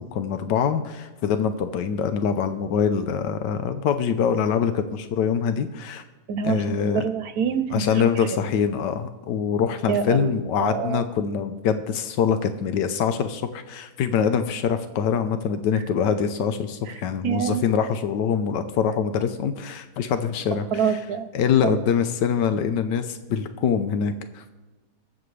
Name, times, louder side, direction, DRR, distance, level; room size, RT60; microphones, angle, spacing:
voice 1, 0.0-6.0 6.4-7.0 7.7-21.0 21.3-24.4, left 7 dB, 90° left, 9 dB, 1.4 m, -24 dB
voice 2, 6.3-8.2 9.9-11.0 17.2-17.6 20.7-21.3 21.6-21.7, right 7 dB, 65° right, 10 dB, 1.2 m, -26 dB
21.0 x 7.7 x 3.3 m, 1.2 s
omnidirectional pair, 1.8 m